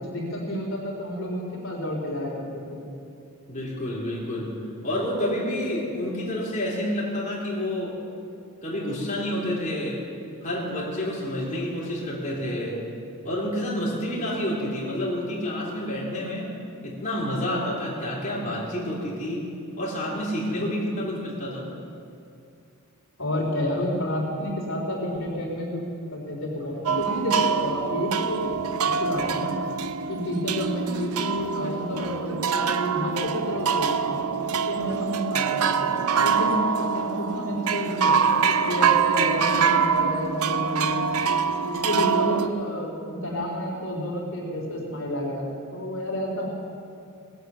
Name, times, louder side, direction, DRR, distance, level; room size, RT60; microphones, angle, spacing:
voice 1, 0.1-2.8 23.2-25.8 26.1-28.6 28.9-29.6 30.1-34.2 34.7-41.0 41.7-45.5 45.7-46.5, left 1 dB, 65° left, -3 dB, 3.7 m, -30 dB
voice 2, 3.5-4.5 4.8-8.0 8.6-10.0 10.4-12.8 13.2-16.5 16.8-19.5 19.8-21.7, left 1 dB, 35° left, -7 dB, 3.4 m, -29 dB
sound 1, 26.9-42.5, right 6 dB, 85° right, 0.6 m, -25 dB
19.0 x 8.1 x 8.1 m, 2.5 s
head